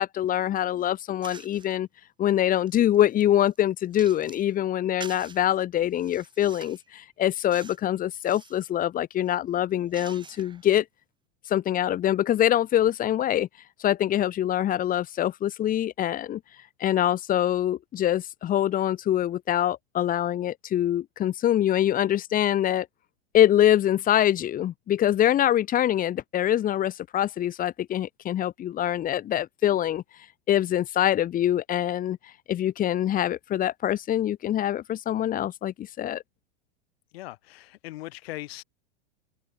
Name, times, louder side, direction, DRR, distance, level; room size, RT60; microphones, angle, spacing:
voice 1, 0.0-1.9 2.2-10.8 11.5-13.5 13.8-16.4 16.8-22.9 23.3-30.0 30.5-32.2 32.5-36.2, left 11 dB, 25° left, 2.4 m, -24 dB
sound 1, 1.2-1.7 2.3-4.5 5.0-5.4 5.9-6.9 7.5-7.9 8.1-8.6 9.2-10.7, right 5 dB, 15° right, 7.5 m, -47 dB
voice 2, 37.1-38.6, left 17 dB, 60° left, 4.2 m, -39 dB
open air
supercardioid pair, 140°, 34 cm